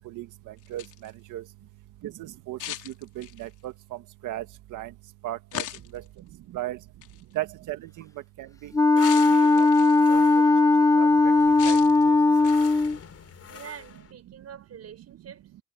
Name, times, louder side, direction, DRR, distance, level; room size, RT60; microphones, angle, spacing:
sound 1, 0.6-1.1 2.6-3.5 5.5-6.1 7.0-7.2 9.0-10.1 11.6-12.0 12.4-12.9, left 13 dB, 85° left, 3.5 m, -38 dB
voice 1, 0.7-1.4 2.0-2.6 3.2-3.7 4.2-4.4 4.7-4.9 5.2-5.7 6.5-6.8 7.4-7.8 8.4-8.7 9.2-9.7 10.1-10.2 11.0-11.1 11.6-11.8, right 15 dB, 85° right, 1.7 m, -35 dB
Wind instrument woodwind instrument, 8.7-13.0, left 3 dB, 10° left, 0.3 m, -19 dB
sound 2, 9.0-14.1, left 7 dB, 55° left, 3.6 m, -45 dB
voice 2, 13.5-15.4, right 8 dB, 55° right, 4.9 m, -46 dB
cardioid pair, 90°, 30 cm